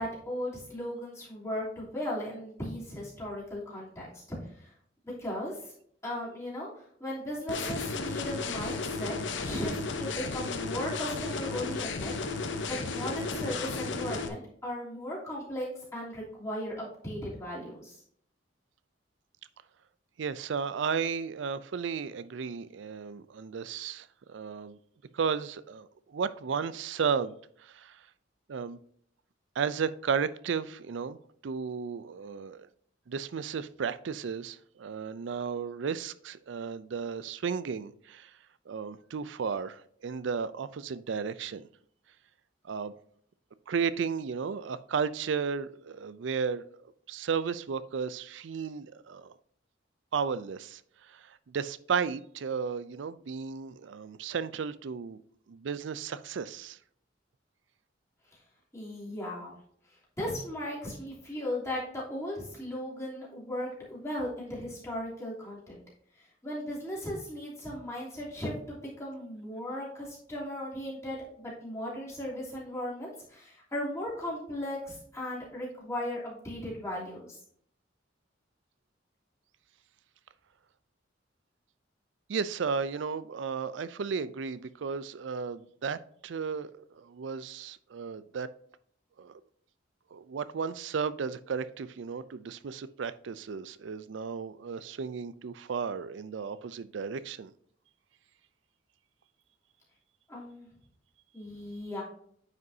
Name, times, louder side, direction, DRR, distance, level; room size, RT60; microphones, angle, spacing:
voice 1, 0.0-4.7 5.0-5.7 6.0-9.1 9.4-18.0 58.3-58.4 58.7-59.6 59.9-65.8 66.2-77.4 100.3-100.7 101.3-102.0, left 1 dB, 15° left, 3.0 m, -37 dB
sound 1, 7.5-14.3, left 4 dB, 75° left, 0.8 m, -34 dB
voice 2, 20.2-24.8 25.1-28.0 28.5-28.8 29.6-31.2 31.4-32.7 33.1-38.3 38.7-41.7 42.6-42.9 43.7-46.7 47.1-49.3 50.1-50.8 51.1-55.2 55.5-56.8 82.3-88.5 89.2-89.4 90.1-97.5, right 6 dB, 75° right, 0.4 m, -34 dB
9.4 x 5.3 x 2.7 m
head